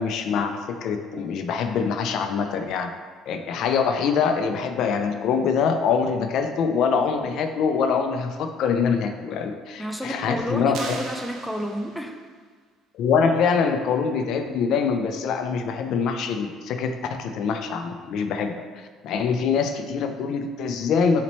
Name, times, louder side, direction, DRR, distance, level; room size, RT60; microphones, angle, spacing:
voice 1, 0.0-2.9 3.3-10.8 12.9-18.6 19.0-21.2, left 6 dB, 65° left, 6 dB, 0.3 m, -24 dB
voice 2, 9.8-12.2, equal, ahead, 4 dB, 0.4 m, -31 dB
sound 1, 10.7-12.3, right 4 dB, 70° right, 0.6 m, -38 dB
4.2 x 4.1 x 3.0 m, 1.5 s
cardioid pair, 105°, 0 cm